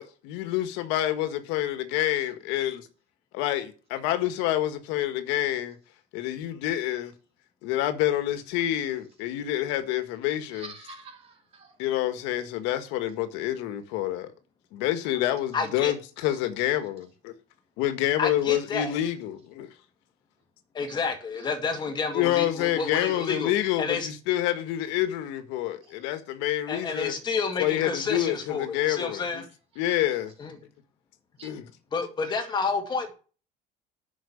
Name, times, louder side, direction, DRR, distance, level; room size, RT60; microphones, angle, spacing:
voice 1, 0.0-2.8 3.3-5.8 6.1-7.1 7.6-10.7 11.8-14.3 14.7-17.3 17.8-19.7 22.1-27.2 27.6-29.4 29.7-30.3 31.4-31.7, left 13 dB, 80° left, 1.7 m, -27 dB
voice 2, 10.5-11.7 16.2-16.4 20.9-21.0 21.4-21.5 21.7-21.9 22.8-23.2 25.8-25.9 31.4-31.5 32.3-32.5, right 3 dB, 30° right, 2.8 m, -47 dB
voice 3, 15.5-15.9 18.2-18.9 20.7-23.5 23.8-24.1 26.7-29.4 30.4-30.5 31.9-33.1, left 4 dB, 25° left, 2.2 m, -30 dB
10.5 x 6.3 x 7.1 m
cardioid pair, 165°, 19 cm